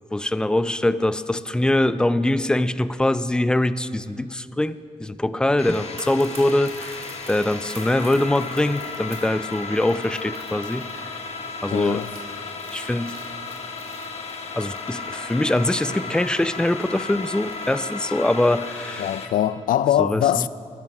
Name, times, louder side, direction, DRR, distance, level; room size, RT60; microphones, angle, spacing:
voice 1, 0.1-7.0 7.3-10.9 11.6-12.1 12.7-13.2 14.5-19.1 20.0-20.5, left 1 dB, 5° left, 0.3 m, -23 dB
sound 1, 5.6-19.3, left 4 dB, 50° left, 1.2 m, -34 dB
sound 2, 5.6-18.8 19.0-19.2, right 3 dB, 45° right, 2.5 m, -47 dB
voice 2, 11.7-12.1 19.0-20.5, left 11 dB, 90° left, 0.4 m, -22 dB
13.5 x 11.0 x 6.2 m
wide cardioid pair, 135°, 14 cm